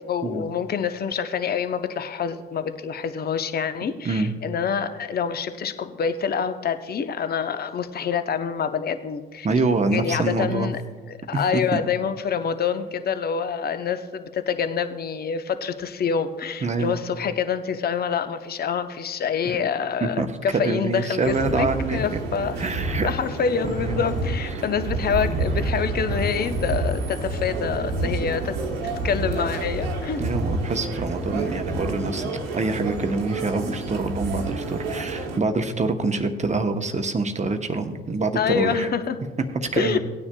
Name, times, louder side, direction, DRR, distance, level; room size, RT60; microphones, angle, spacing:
voice 1, 0.0-9.5 9.9-10.8 11.3-22.6 23.0-28.5 29.0-30.2 38.3-39.2 39.8-40.0, left 7 dB, 30° left, 10 dB, 0.7 m, -26 dB
voice 2, 9.4-10.7 11.3-11.8 16.6-17.0 19.4-19.6 20.0-22.2 22.6-23.1 23.6-24.0 24.5-24.6 30.2-38.9 39.5-40.0, right 3 dB, 25° right, 6 dB, 0.9 m, -26 dB
sound 1, 21.2-35.4, right 2 dB, 85° right, 1.1 m, -28 dB
18.0 x 9.6 x 2.3 m, 1.5 s
hypercardioid pair, 55°, 29 cm